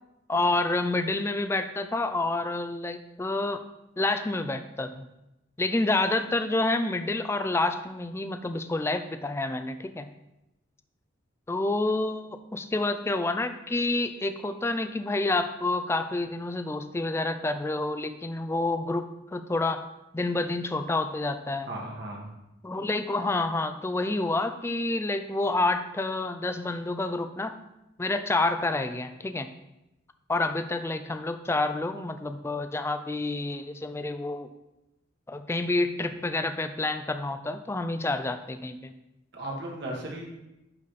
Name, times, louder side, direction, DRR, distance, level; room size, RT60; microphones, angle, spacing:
voice 1, 0.3-3.6 4.0-5.1 5.6-10.1 11.5-19.9 20.1-21.7 22.6-27.6 28.0-29.5 30.3-34.5 35.3-38.9, left 2 dB, 15° left, 9 dB, 0.3 m, -28 dB
voice 2, 21.6-22.3 39.3-40.2, right 1 dB, 60° right, -2 dB, 1.7 m, -36 dB
10.5 x 4.1 x 3.3 m, 0.92 s
head